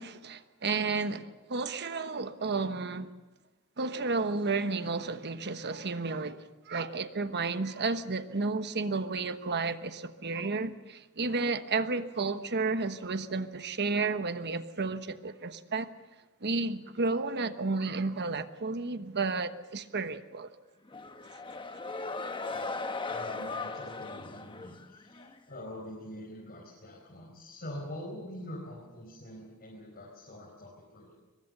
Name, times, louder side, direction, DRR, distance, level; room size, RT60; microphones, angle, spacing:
voice 1, 0.0-3.1 3.8-15.9 16.4-20.5, right 3 dB, 50° right, 1.2 m, -32 dB
sound 1, 20.9-25.4, left 3 dB, 20° left, 1.1 m, -38 dB
voice 2, 23.0-31.1, left 1 dB, 45° left, 4.9 m, -44 dB
23.0 x 21.5 x 6.8 m
head